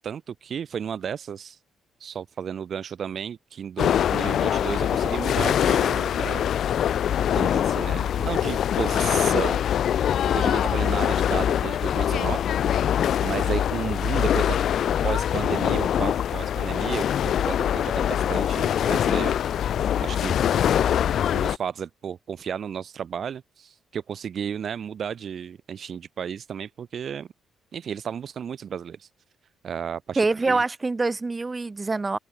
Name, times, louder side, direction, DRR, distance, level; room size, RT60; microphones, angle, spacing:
voice 1, 0.0-1.6 2.0-6.5 7.4-9.6 10.3-12.4 13.2-14.6 15.0-19.3 20.0-20.4 21.3-27.3 27.7-29.1 29.6-30.6, right 8 dB, 55° right, 2.9 m, -33 dB
sound 1, 3.8-21.6, left 9 dB, 65° left, 0.7 m, -23 dB
voice 2, 30.2-32.2, right 3 dB, 25° right, 7.0 m, -25 dB
open air
cardioid pair, 90°, 0 cm